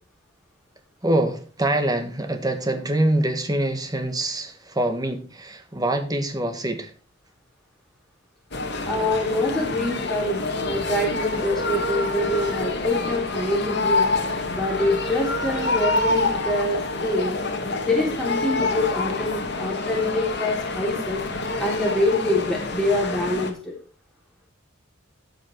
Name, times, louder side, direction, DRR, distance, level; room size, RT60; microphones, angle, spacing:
voice 1, 1.0-6.9, right 1 dB, 20° right, 1.5 m, -25 dB
sound 1, 8.5-23.5, left 2 dB, 55° left, 1.9 m, -27 dB
voice 2, 8.9-14.1 14.5-17.4 17.8-21.2 21.6-23.7, left 1 dB, 5° left, 3.4 m, -25 dB
15.0 x 5.8 x 4.6 m
head